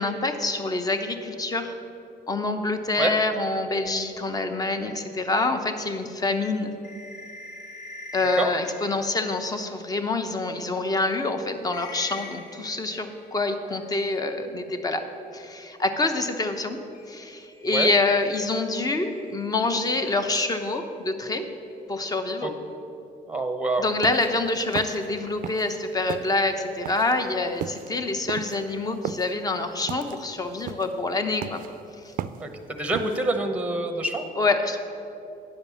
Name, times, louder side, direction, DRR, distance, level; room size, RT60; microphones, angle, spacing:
voice 1, 0.0-1.7 2.3-6.7 8.1-15.0 15.3-16.8 17.1-21.4 21.9-22.5 23.8-31.6 32.0-32.1 34.3-34.8, left 3 dB, 20° left, 7 dB, 0.8 m, -26 dB
sound 1, 5.9-10.2 10.7-10.8 11.2-11.3 11.7-14.6 16.9-21.3, left 2 dB, 80° left, 1.5 m, -46 dB
voice 2, 23.3-23.9 32.4-34.2, right 2 dB, 10° right, 6 dB, 0.9 m, -26 dB
sound 2, 23.8-25.8 26.1-33.3, right 10 dB, 55° right, 0.4 m, -36 dB
9.8 x 5.3 x 7.3 m, 2.8 s
cardioid pair, 110°, 17 cm